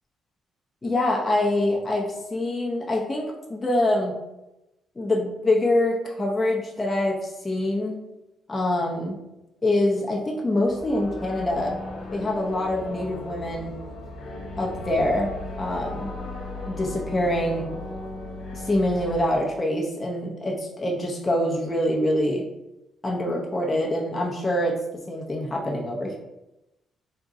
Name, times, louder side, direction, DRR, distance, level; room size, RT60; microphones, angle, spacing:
voice 1, 0.8-4.1 5.0-8.0 8.5-9.2 9.6-11.8 12.1-13.7 14.6-16.1 16.7-17.7 18.5-22.4 23.0-24.8 25.1-26.2, left 1 dB, 20° left, -2 dB, 0.6 m, -25 dB
sound 1, 10.6-19.2, left 2 dB, 65° left, 1.1 m, -36 dB
3.6 x 2.2 x 3.9 m, 0.94 s
cardioid pair, 90°, 0 cm